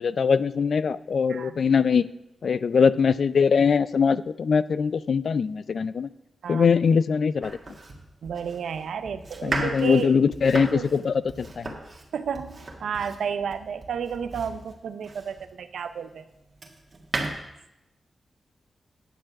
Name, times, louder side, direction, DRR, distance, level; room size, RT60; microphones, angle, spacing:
voice 1, 0.0-2.1 2.4-6.1 6.5-7.6 9.4-11.8, left 6 dB, 70° left, 16 dB, 0.3 m, -22 dB
voice 2, 1.3-1.6 6.4-6.7 8.2-10.2 10.6-10.9 12.1-16.3, right 7 dB, 85° right, 10 dB, 0.6 m, -32 dB
Domestic sounds home sounds, 7.4-15.6 16.1-17.3, right 3 dB, 50° right, 1.7 m, -36 dB
10.0 x 6.5 x 5.8 m, 0.89 s
cardioid pair, 50°, 0 cm